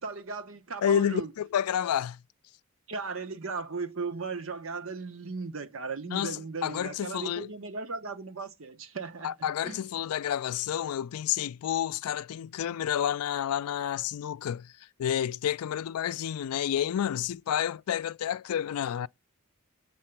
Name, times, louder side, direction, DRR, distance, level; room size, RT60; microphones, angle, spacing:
voice 1, 0.0-1.3 2.9-9.3 9.6-9.8, right 4 dB, 65° right, 0.9 m, -36 dB
voice 2, 0.8-2.2 6.1-7.5 9.2-14.7 15.0-19.1, left 9 dB, 85° left, 0.3 m, -30 dB
7.7 x 3.7 x 5.8 m
head